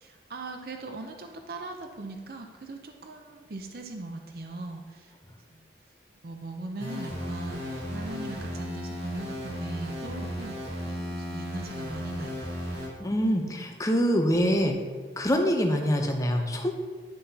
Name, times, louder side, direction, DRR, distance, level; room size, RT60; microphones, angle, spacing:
voice 1, 0.0-5.1 5.5-5.7 6.2-10.6 10.9-12.4, right 2 dB, 55° right, 4 dB, 0.6 m, -40 dB
sound 1, 6.8-12.9, equal, 80° right, 2.1 m, -35 dB
voice 2, 13.0-14.8 15.2-16.7, equal, 20° left, 3 dB, 0.6 m, -25 dB
9.9 x 5.7 x 2.8 m, 1.5 s
head